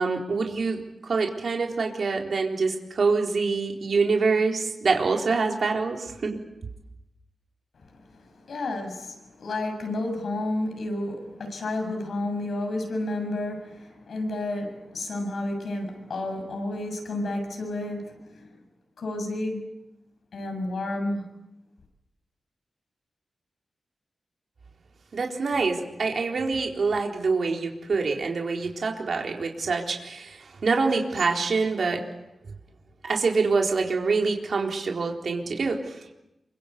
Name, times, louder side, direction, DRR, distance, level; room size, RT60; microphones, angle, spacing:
voice 1, 0.0-6.4 25.1-32.0 33.0-36.1, right 4 dB, 60° right, 1 dB, 4.1 m, -25 dB
voice 2, 8.1-18.6 19.0-19.7 20.3-21.3, left 2 dB, 75° left, 5 dB, 7.1 m, -31 dB
28.5 x 25.0 x 8.4 m, 0.88 s
wide cardioid pair, 155°, 0 cm